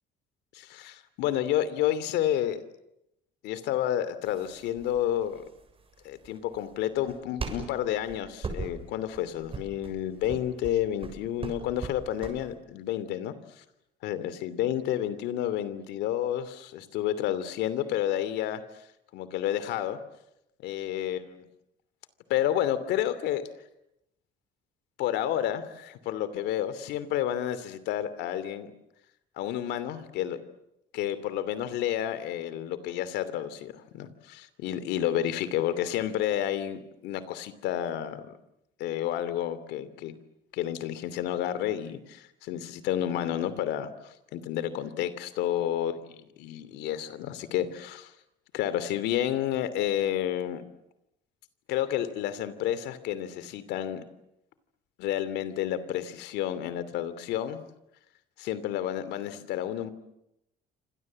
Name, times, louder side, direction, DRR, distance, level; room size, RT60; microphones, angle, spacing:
voice 1, 0.5-2.6 3.4-5.4 6.0-13.3 14.0-18.6 19.1-20.0 20.6-21.4 22.3-23.5 25.0-28.7 29.4-30.4 30.9-38.2 38.8-40.1 40.5-48.1 48.5-50.6 51.7-54.0 55.0-57.6 58.4-59.9, left 11 dB, 85° left, 14 dB, 2.8 m, -30 dB
sound 1, 4.2-12.5, right 4 dB, 35° right, 7.4 m, -40 dB
28.5 x 26.0 x 7.6 m, 0.83 s
cardioid pair, 110°, 17 cm